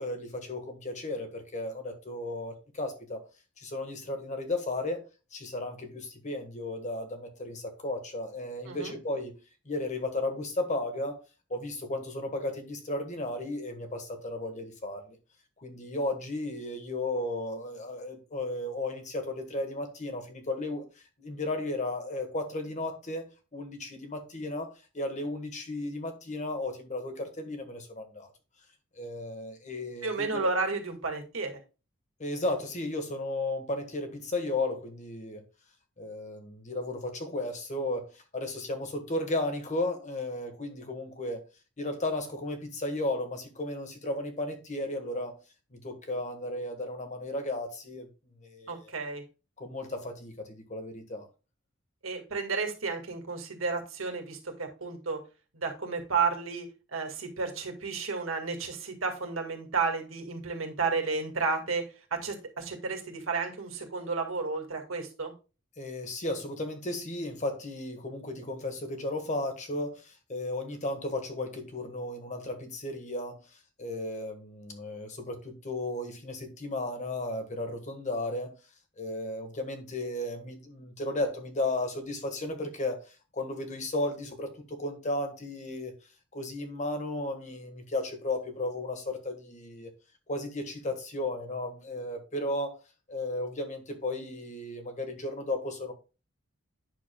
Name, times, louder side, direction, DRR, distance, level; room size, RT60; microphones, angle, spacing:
voice 1, 0.0-3.2 3.6-5.0 5.3-9.3 9.6-11.2 11.5-15.2 15.6-20.8 21.2-28.3 29.0-30.5 32.2-35.4 36.0-41.4 41.8-45.4 45.7-48.1 48.4-48.9 49.6-51.3 65.8-73.4 73.8-78.5 79.0-85.9 86.3-89.9 90.3-92.8 93.1-95.9, left 2 dB, 35° left, 1.6 m, -34 dB
voice 2, 30.0-31.6 48.7-49.2 52.0-55.2 55.5-61.9 62.1-65.3, right 4 dB, 70° right, 2.2 m, -32 dB
9.5 x 6.5 x 2.3 m
head